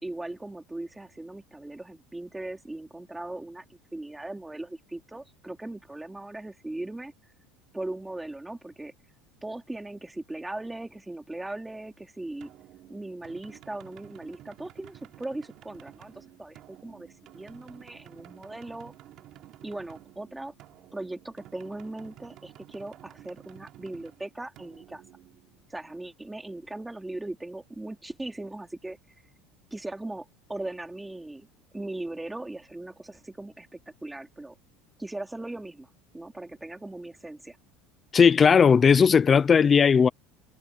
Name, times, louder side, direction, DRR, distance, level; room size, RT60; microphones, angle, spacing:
voice 1, 0.0-7.1 7.7-8.9 9.4-12.5 12.9-18.9 19.6-20.5 20.9-25.0 25.7-29.0 29.7-31.5 31.7-33.7 34.0-34.5 35.0-35.9 36.1-37.6, right 2 dB, 10° right, 3.0 m, -39 dB
sound 1, 12.4-26.0, right 14 dB, 50° right, 3.6 m, -52 dB
voice 2, 38.1-40.1, left 6 dB, 25° left, 0.7 m, -17 dB
supercardioid pair, 125°, 0 cm